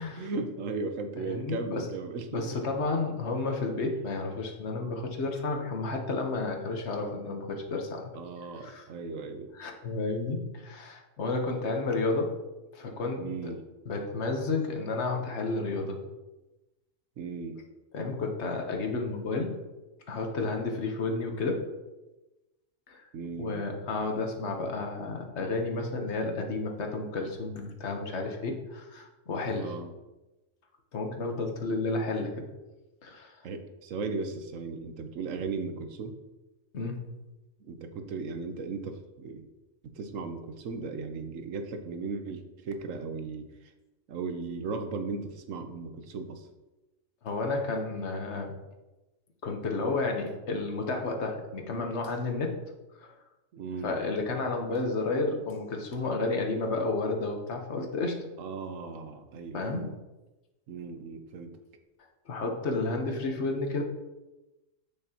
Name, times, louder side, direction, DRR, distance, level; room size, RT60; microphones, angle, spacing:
voice 1, 0.2-2.6 8.1-9.5 13.2-13.6 17.2-17.6 23.1-23.6 29.5-29.9 33.4-36.2 37.6-39.4 39.9-43.7 44.1-46.5 53.5-54.0 58.4-59.9 60.7-61.6, right 4 dB, 85° right, 7 dB, 1.2 m, -37 dB
voice 2, 1.2-1.9 2.3-8.1 8.6-8.8 9.5-12.4 12.7-13.5 13.9-16.0 17.9-19.6 20.1-21.7 22.9-23.0 23.4-29.8 30.9-32.4 33.0-33.4 36.7-37.1 47.2-48.5 49.4-52.6 53.0-53.1 53.8-58.2 59.5-59.8 62.3-63.8, left 3 dB, 60° left, 3 dB, 1.4 m, -31 dB
8.7 x 6.8 x 2.9 m, 1.1 s
omnidirectional pair, 1.3 m